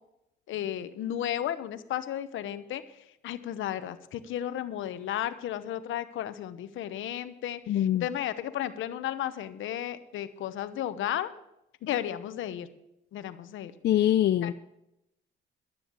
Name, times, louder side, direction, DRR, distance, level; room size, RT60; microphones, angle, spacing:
voice 1, 0.5-2.8 3.2-11.3 11.8-12.7 13.1-13.7 14.4-14.5, left 11 dB, 80° left, 1.0 m, -33 dB
voice 2, 7.7-8.0 13.8-14.5, left 12 dB, 60° left, 0.5 m, -23 dB
12.0 x 10.0 x 6.2 m
cardioid pair, 90°, 20 cm